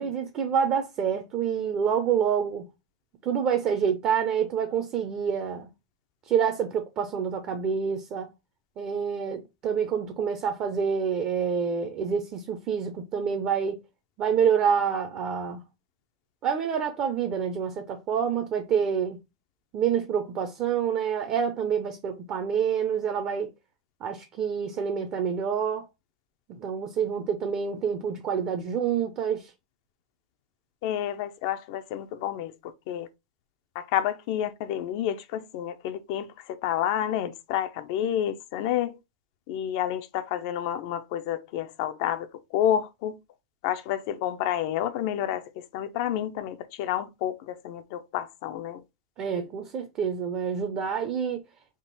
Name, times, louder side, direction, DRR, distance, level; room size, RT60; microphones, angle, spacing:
voice 1, 0.0-2.7 3.2-5.7 6.3-8.3 8.8-13.8 14.2-15.6 16.4-19.2 19.7-23.5 24.0-25.9 26.5-29.5 49.2-51.4, right 7 dB, 35° right, 0.6 m, -27 dB
voice 2, 30.8-33.1 33.7-39.0 39.5-42.3 42.5-43.2 43.6-48.8, left 11 dB, 55° left, 0.5 m, -29 dB
3.6 x 2.4 x 3.9 m
supercardioid pair, 140°, 3 cm